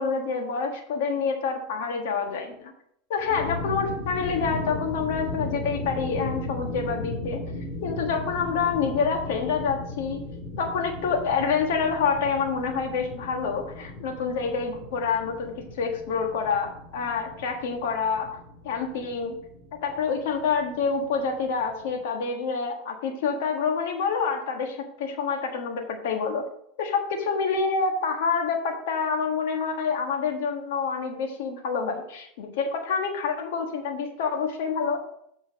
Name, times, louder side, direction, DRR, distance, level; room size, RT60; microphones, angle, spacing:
voice 1, 0.0-2.7 3.1-7.4 7.8-10.2 10.6-18.4 18.6-19.4 19.8-26.4 26.8-35.0, left 5 dB, 80° left, 3 dB, 1.4 m, -27 dB
sound 1, 3.2-22.0, left 2 dB, 35° left, 1.8 m, -37 dB
7.5 x 4.4 x 5.2 m, 0.70 s
supercardioid pair, 120°, 0 cm